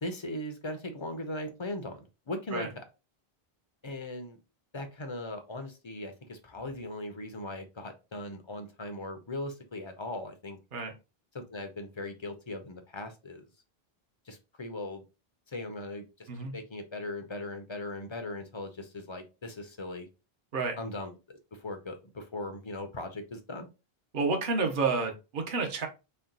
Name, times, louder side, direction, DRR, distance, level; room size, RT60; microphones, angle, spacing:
voice 1, 0.0-2.9 3.8-4.4 4.7-10.6 11.3-13.5 14.3-15.1 15.5-20.1 20.8-23.7, left 2 dB, 35° left, 6 dB, 0.6 m, -39 dB
voice 2, 24.1-25.9, right 4 dB, 55° right, 3 dB, 1.0 m, -30 dB
4.3 x 2.2 x 3.8 m, 0.28 s
omnidirectional pair, 1.0 m